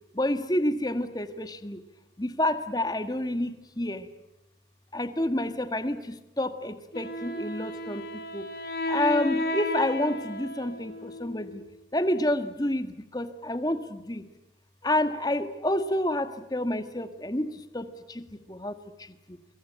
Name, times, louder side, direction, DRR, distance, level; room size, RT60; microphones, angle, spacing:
voice 1, 0.1-1.8 2.2-4.1 4.9-8.5 8.9-11.6 11.9-14.2 14.8-19.4, left 1 dB, 20° left, 10 dB, 1.5 m, -29 dB
Wind instrument woodwind instrument, 6.9-11.7, left 2 dB, 55° left, 3.6 m, -33 dB
24.5 x 23.5 x 9.0 m, 0.92 s
head